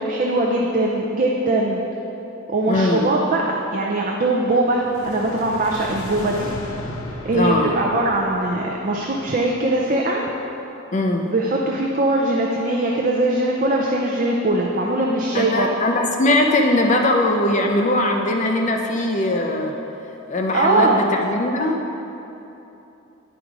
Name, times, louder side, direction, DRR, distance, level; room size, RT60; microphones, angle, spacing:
voice 1, 0.1-1.8 2.5-6.5 7.2-10.2 11.2-15.7 20.5-21.0, right 2 dB, 40° right, -2 dB, 0.5 m, -21 dB
voice 2, 2.7-3.0 7.3-7.8 10.9-11.3 15.3-19.8 20.3-21.8, left 1 dB, 35° left, 2 dB, 0.5 m, -20 dB
sound 1, 4.7-9.9, left 1 dB, 85° left, 0.7 m, -36 dB
9.0 x 5.1 x 4.7 m, 2.9 s
head